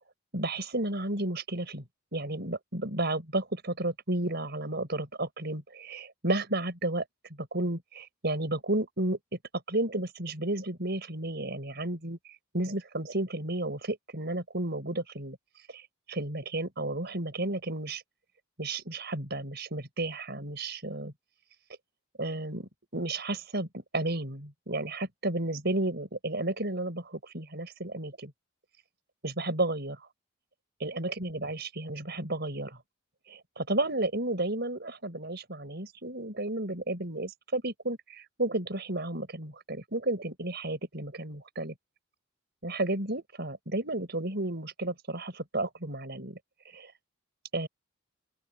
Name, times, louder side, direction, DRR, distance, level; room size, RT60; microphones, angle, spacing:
voice 1, 0.3-1.8 2.1-7.0 7.4-9.2 9.7-12.2 12.5-15.4 15.7-18.0 18.6-21.1 22.2-28.3 29.2-30.1 30.8-32.8 33.3-41.7 42.6-46.4 46.6-46.9 47.5-47.7, right 2 dB, 55° right, 5.6 m, -32 dB
open air
head